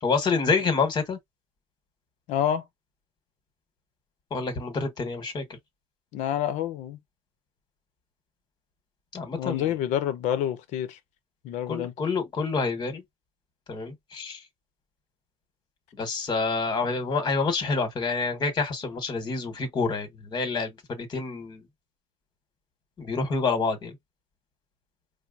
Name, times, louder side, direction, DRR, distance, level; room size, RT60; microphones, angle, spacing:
voice 1, 0.0-1.2 4.3-5.4 9.1-9.7 11.7-13.0 13.7-14.4 16.0-21.6 23.0-23.9, left 4 dB, 35° left, 1.5 m, -27 dB
voice 2, 2.3-2.6 6.1-7.0 9.3-11.0 11.4-11.9, left 10 dB, 80° left, 0.8 m, -28 dB
4.5 x 2.1 x 2.5 m
cardioid pair, 125°, 12 cm